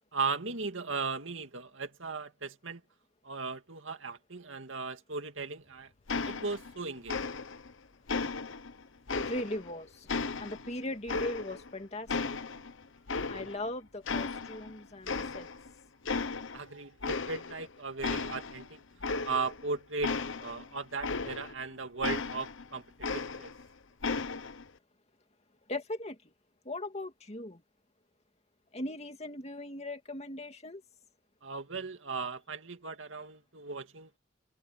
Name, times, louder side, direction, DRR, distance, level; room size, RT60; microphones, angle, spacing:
voice 1, 0.1-2.8 3.2-5.9 6.3-7.2 16.5-18.8 19.2-22.8 23.1-23.5 31.4-34.1, right 4 dB, 75° right, 2.3 m, -37 dB
sound 1, 6.1-6.8 7.1-7.7 8.1-9.7 10.1-11.7 12.1-13.7 14.1-14.7 15.1-15.7 16.1-16.6 17.0-17.7 18.0-21.6 22.0-23.7 24.0-24.6, left 4 dB, 75° left, 1.0 m, -35 dB
voice 2, 9.2-10.1 10.4-12.3 13.3-15.5 25.7-26.2 26.6-27.6 28.7-30.8, left 1 dB, 35° left, 2.4 m, -39 dB
head